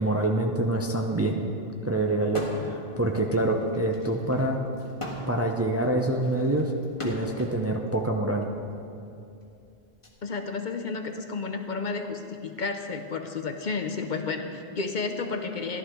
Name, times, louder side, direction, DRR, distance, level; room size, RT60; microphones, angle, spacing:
voice 1, 0.0-1.5 1.8-4.7 5.3-6.7 7.0-8.5, right 1 dB, 20° right, 2 dB, 0.5 m, -26 dB
sound 1, 2.3-2.8 3.2-7.6 8.4-10.1, left 2 dB, 30° left, 1.5 m, -39 dB
voice 2, 10.2-15.8, left 4 dB, 50° left, 5 dB, 0.8 m, -32 dB
14.5 x 11.5 x 3.7 m, 2.6 s
omnidirectional pair, 1.1 m